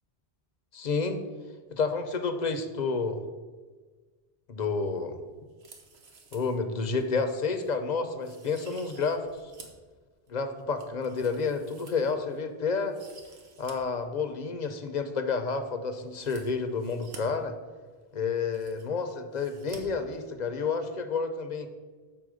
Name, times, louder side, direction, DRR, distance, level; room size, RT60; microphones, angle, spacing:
voice 1, 0.7-1.2 1.7-3.2 4.5-5.2 6.3-9.2 10.3-13.0 13.6-17.5 18.1-21.7, left 4 dB, 50° left, 7 dB, 0.7 m, -30 dB
sound 1, 5.5-6.6 7.0-7.1 7.6-7.8 8.2-9.9 10.3-12.4 12.8-13.7 14.0-14.1 16.1-17.2 18.0-18.1 18.3-19.0 19.3-19.8 20.1-20.2, right 4 dB, 90° right, 1.3 m, -52 dB
7.0 x 4.2 x 6.3 m, 1.4 s
omnidirectional pair, 1.0 m